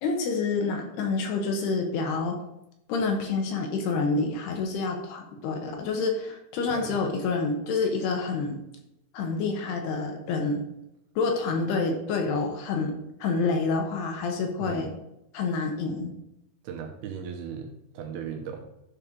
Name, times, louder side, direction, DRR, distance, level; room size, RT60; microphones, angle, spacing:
voice 1, 0.0-2.4 2.9-8.6 9.1-10.6 11.2-14.9 15.3-16.1, left 4 dB, 70° left, 2 dB, 2.9 m, -28 dB
voice 2, 6.7-7.0 14.6-14.9 16.6-18.7, right 7 dB, 80° right, 3 dB, 2.3 m, -37 dB
12.5 x 4.4 x 5.1 m, 0.87 s
omnidirectional pair, 5.3 m